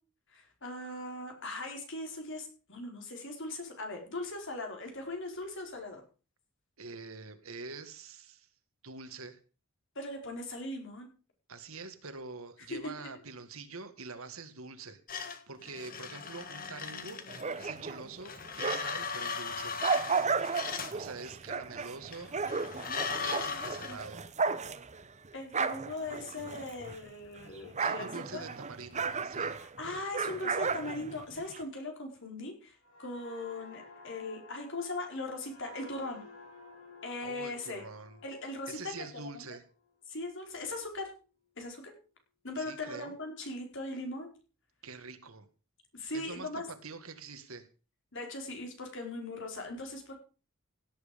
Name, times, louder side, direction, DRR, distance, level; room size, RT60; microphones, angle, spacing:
voice 1, 0.3-6.0 9.9-11.1 12.7-12.9 25.3-28.5 29.5-36.2 37.0-37.8 38.2-39.4 40.1-41.1 41.6-41.9 42.4-44.3 45.9-46.7 48.1-50.1, left 2 dB, 60° left, 3 dB, 4.9 m, -39 dB
voice 2, 6.8-8.5 8.8-9.4 11.5-17.2 17.6-19.8 20.9-22.3 22.8-24.2 27.8-29.6 37.2-38.2 38.7-39.6 42.6-43.1 44.8-45.5 46.1-47.7, right 4 dB, 75° right, 9 dB, 1.9 m, -45 dB
sound 1, 15.1-17.8 18.2-21.0 22.1-24.0, left 6 dB, 45° left, 1.6 m, -38 dB
sound 2, 17.3-19.1 19.5-27.1 27.4-31.6, right 5 dB, 35° right, 0.9 m, -34 dB
sound 3, 32.8-40.3 40.7-40.9, left 3 dB, 85° left, 6.4 m, -53 dB
17.0 x 8.9 x 5.3 m, 0.35 s
head